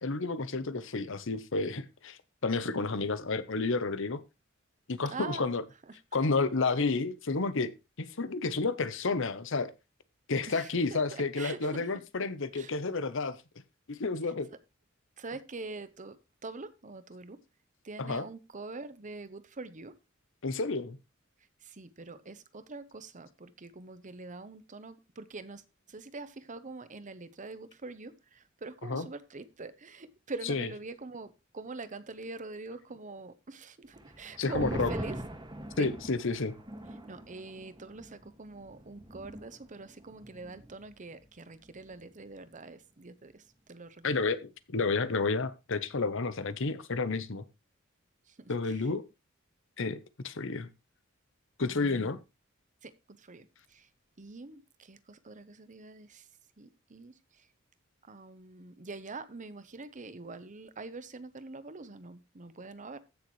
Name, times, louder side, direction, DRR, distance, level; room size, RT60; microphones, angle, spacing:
voice 1, 0.0-4.2 4.9-5.6 6.1-7.7 8.0-9.7 10.3-13.4 13.9-14.5 18.0-18.3 20.4-21.0 28.8-29.1 30.4-30.7 34.4-34.9 35.8-36.5 44.0-47.4 48.5-49.0 49.8-50.7 51.6-52.2, left 3 dB, 65° left, 0.9 m, -31 dB
voice 2, 5.1-5.5 10.5-11.9 12.5-12.7 15.2-16.2 16.4-17.4 17.8-19.9 21.6-25.6 25.9-35.2 35.8-35.9 37.1-43.4 43.7-44.2 51.6-52.1 52.8-53.9 54.2-56.2 56.6-57.1 58.1-63.0, right 3 dB, 40° right, 0.9 m, -44 dB
sound 1, 33.9-40.9 41.2-41.3 41.6-42.1, right 1 dB, 20° right, 2.0 m, -42 dB
15.0 x 6.7 x 3.2 m
head